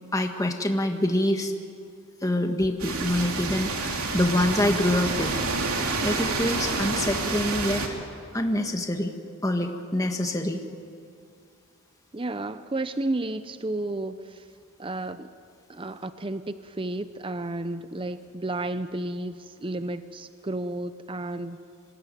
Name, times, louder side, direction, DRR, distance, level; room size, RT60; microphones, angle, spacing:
voice 1, 0.1-1.5 2.2-5.3 6.0-7.8 8.3-9.1 9.4-10.6, left 1 dB, 15° left, 4 dB, 1.7 m, -25 dB
sound 1, 2.8-7.9, right 3 dB, 75° right, 3.1 m, -28 dB
voice 2, 12.1-14.4 14.8-15.3 15.7-21.6, right 2 dB, 25° right, 11 dB, 0.6 m, -32 dB
26.0 x 19.5 x 9.3 m, 2.3 s
head